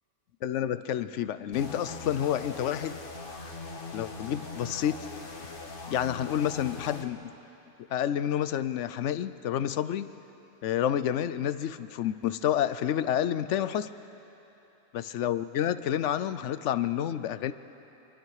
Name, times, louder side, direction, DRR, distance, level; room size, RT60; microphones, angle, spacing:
voice 1, 0.4-3.0 3.9-5.1 5.9-7.3 7.9-10.1 10.6-13.9 14.9-17.5, left 10 dB, 65° left, 13 dB, 0.8 m, -29 dB
sound 1, 1.5-7.1, left 3 dB, 40° left, 1.6 m, -41 dB
26.5 x 22.5 x 4.8 m, 3.0 s
omnidirectional pair, 1.5 m